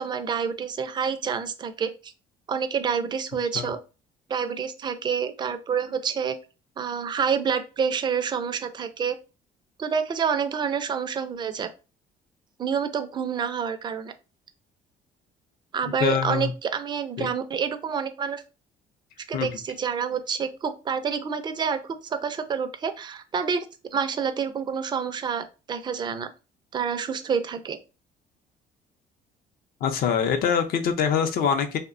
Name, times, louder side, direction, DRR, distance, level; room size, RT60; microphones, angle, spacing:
voice 1, 0.0-2.1 2.5-3.8 4.3-6.4 6.8-9.2 9.8-11.7 12.6-14.1 15.7-18.4 19.3-23.7 23.9-26.3 26.7-27.8, right 6 dB, 25° right, 9 dB, 0.3 m, -28 dB
voice 2, 16.0-16.5 17.2-17.3 19.3-19.5 29.8-31.8, left 7 dB, 60° left, 7 dB, 0.5 m, -24 dB
2.7 x 2.1 x 2.4 m, 0.31 s
cardioid pair, 110°, 17 cm